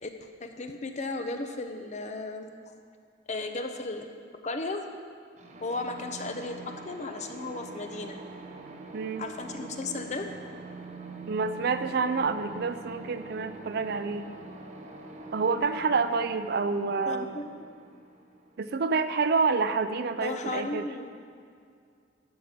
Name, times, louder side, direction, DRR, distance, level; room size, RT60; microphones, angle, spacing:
voice 1, 0.0-2.7 3.3-4.1 4.4-4.8 5.6-8.2 9.2-10.3 17.1-18.0 20.2-21.1, left 2 dB, 40° left, 6 dB, 0.7 m, -35 dB
sound 1, 5.4-19.0, right 3 dB, 40° right, 0.9 m, -44 dB
voice 2, 8.9-9.3 11.3-14.3 15.3-17.4 18.6-20.9, right 4 dB, 55° right, 11 dB, 0.4 m, -28 dB
12.0 x 6.5 x 5.1 m, 2.2 s
head